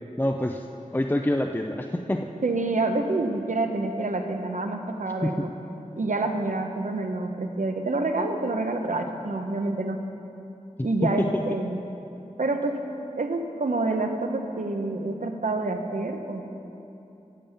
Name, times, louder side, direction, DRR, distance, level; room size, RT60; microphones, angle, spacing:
voice 1, 0.2-0.7 0.9-2.3 5.2-5.5 11.0-11.4, left 1 dB, 15° left, 3 dB, 0.4 m, -26 dB
voice 2, 2.4-5.5 6.0-10.0 10.8-11.8 12.4-12.8 13.1-16.5, right 2 dB, 65° right, 5 dB, 0.8 m, -27 dB
9.0 x 7.3 x 6.9 m, 2.9 s
wide cardioid pair, 50°, 14 cm